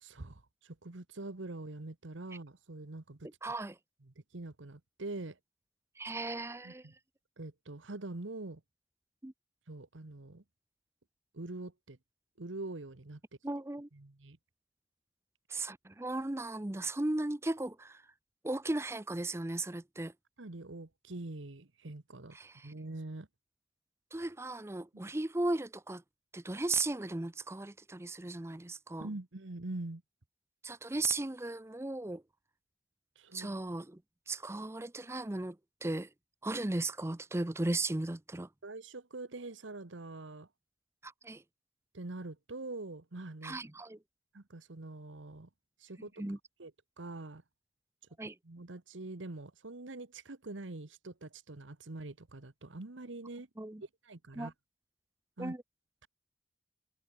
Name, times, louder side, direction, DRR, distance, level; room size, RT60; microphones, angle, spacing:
voice 1, 0.0-3.3 4.1-5.4 6.6-6.9 7.4-8.6 9.7-10.4 11.3-12.0 12.4-13.2 13.9-14.4 20.4-22.4 22.6-23.3 29.0-30.0 33.2-33.6 38.6-40.5 41.9-43.6 44.3-45.5 45.8-46.1 46.6-46.7 47.0-47.4 48.4-53.5 54.0-54.5 55.4-55.5, right 2 dB, 80° right, 1.3 m, -44 dB
voice 2, 3.4-3.8 6.0-6.9 9.2-9.3 13.4-13.9 15.5-18.0 18.4-20.1 22.3-22.7 24.1-26.0 26.3-29.1 30.6-32.2 33.3-34.0 34.3-35.6 35.8-36.1 36.4-38.5 41.0-41.4 43.4-44.0 46.0-46.4 48.2-48.3 53.6-53.8 54.4-54.5 55.4-55.6, right 2 dB, 15° right, 0.5 m, -36 dB
head